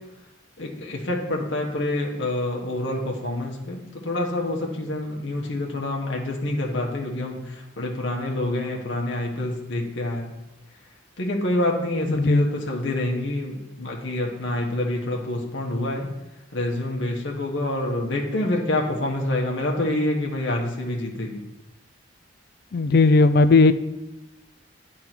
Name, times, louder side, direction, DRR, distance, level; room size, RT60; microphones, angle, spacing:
voice 1, 0.6-10.3 11.2-16.1 16.5-21.4, left 1 dB, 75° left, 0 dB, 1.2 m, -27 dB
voice 2, 12.1-12.5 22.7-23.7, left 3 dB, 55° left, 13 dB, 0.4 m, -16 dB
9.4 x 3.8 x 5.9 m, 0.98 s
head